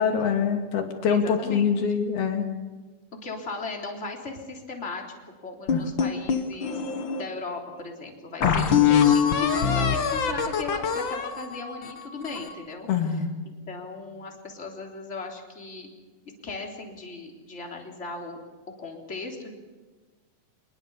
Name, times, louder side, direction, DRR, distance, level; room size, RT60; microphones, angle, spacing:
voice 1, 0.0-2.5 5.7-5.8 8.4-8.7 12.9-13.3, left 7 dB, 75° left, 4 dB, 4.5 m, -24 dB
voice 2, 1.1-1.6 3.2-5.0 5.4-6.8 7.2-15.9 16.4-18.4 18.8-19.5, left 3 dB, 20° left, 0 dB, 3.4 m, -37 dB
sound 1, 5.7-7.2 7.8-7.9 8.4-12.6, left 7 dB, 55° left, 1.4 m, -24 dB
26.5 x 20.5 x 7.1 m, 1.3 s
omnidirectional pair, 4.4 m